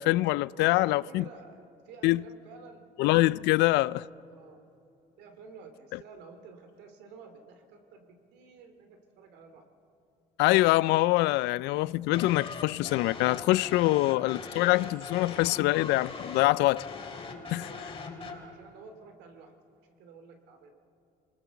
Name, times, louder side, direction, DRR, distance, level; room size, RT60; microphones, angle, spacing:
voice 1, 0.0-1.2 2.0-2.2 3.0-4.0 10.4-16.8 17.5-17.6, left 19 dB, 90° left, 0.4 m, -24 dB
voice 2, 0.6-2.8 3.7-4.6 5.2-9.6 17.5-19.5 20.0-20.7, right 5 dB, 90° right, 2.6 m, -51 dB
sound 1, 12.1-18.4, left 4 dB, 35° left, 2.9 m, -41 dB
25.0 x 20.0 x 7.1 m
cardioid pair, 110°, 17 cm